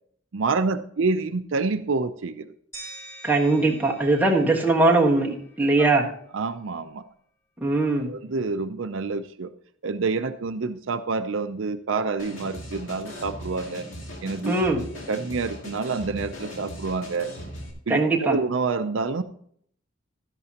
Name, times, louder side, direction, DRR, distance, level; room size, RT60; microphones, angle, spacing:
voice 1, 0.3-2.5 5.8-5.9 6.3-7.1 8.1-9.5 9.8-13.9 14.2-14.5 15.1-17.3 17.9-19.2, right 4 dB, 70° right, 10 dB, 0.5 m, -27 dB
sound 1, 2.7-5.6, right 1 dB, 10° left, 4.6 m, -45 dB
voice 2, 3.2-6.1 7.6-8.1 14.5-14.8 17.9-18.4, right 2 dB, 10° right, -2 dB, 1.4 m, -21 dB
sound 2, 12.2-17.7, equal, 70° left, 2.3 m, -39 dB
12.0 x 11.0 x 2.9 m, 0.63 s
head